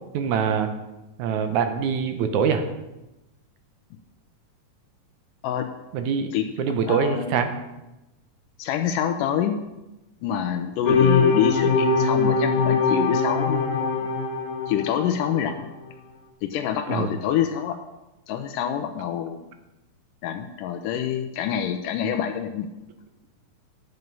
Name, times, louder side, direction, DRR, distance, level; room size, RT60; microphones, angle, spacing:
voice 1, 0.1-0.7 1.2-2.6 5.9-7.5 16.9-17.1, right 6 dB, 70° right, 8 dB, 2.1 m, -24 dB
voice 2, 6.8-7.6 8.6-9.6 10.2-14.1 14.7-15.7 16.4-17.8 18.3-19.5 20.2-22.7, left 9 dB, 80° left, 6 dB, 2.2 m, -26 dB
sound 1, 10.9-15.4, left 4 dB, 65° left, 2.3 m, -22 dB
10.5 x 8.0 x 5.4 m, 0.98 s
omnidirectional pair, 3.8 m